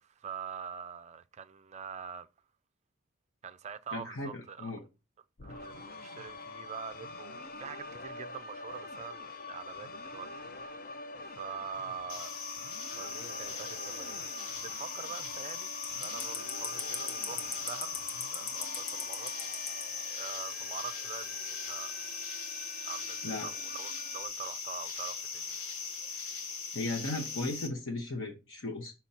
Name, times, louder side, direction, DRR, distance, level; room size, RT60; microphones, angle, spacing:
voice 1, 0.0-2.3 3.4-4.7 5.4-10.9 11.2-12.4 12.9-14.2 14.6-15.7 16.0-18.0 18.3-19.4 20.1-22.1 22.8-25.8, right 7 dB, 35° right, 0.4 m, -44 dB
voice 2, 3.9-4.9 23.2-23.5 26.7-28.9, left 2 dB, 65° left, 1.2 m, -36 dB
sound 1, 5.4-24.3, left 3 dB, 45° left, 0.6 m, -45 dB
sound 2, 12.1-27.7, left 5 dB, 85° left, 1.5 m, -39 dB
6.2 x 4.3 x 5.7 m
head